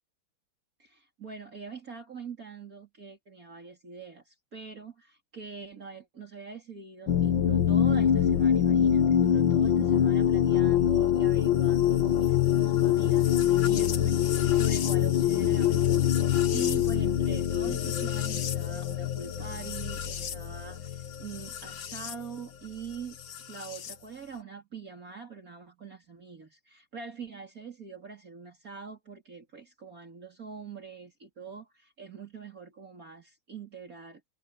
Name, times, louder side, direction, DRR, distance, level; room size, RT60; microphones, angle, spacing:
voice 1, 0.8-23.2 23.5-34.2, right 5 dB, 45° right, 3.5 m, -44 dB
sound 1, 7.1-22.1 23.3-23.9, left 10 dB, 75° left, 2.0 m, -25 dB
omnidirectional pair, 2.1 m